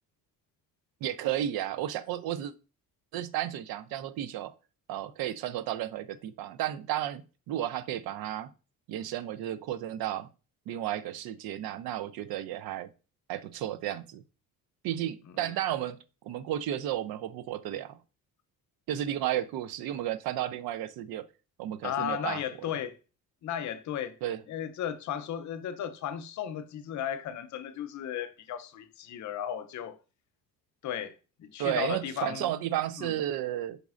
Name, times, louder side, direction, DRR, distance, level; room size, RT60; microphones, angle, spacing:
voice 1, 1.0-2.5 3.1-4.5 4.9-7.2 7.5-8.5 8.9-10.3 10.7-12.9 13.3-14.2 14.8-16.0 16.2-18.0 18.9-21.2 21.6-22.7 24.2-24.4 31.6-33.8, right 12 dB, 85° right, 0.5 m, -33 dB
voice 2, 21.8-23.0 23.4-24.2 24.5-30.0 30.8-31.1 31.4-32.5 33.0-33.1, left 9 dB, 55° left, 0.5 m, -35 dB
5.2 x 4.1 x 2.4 m
cardioid pair, 155°, 36 cm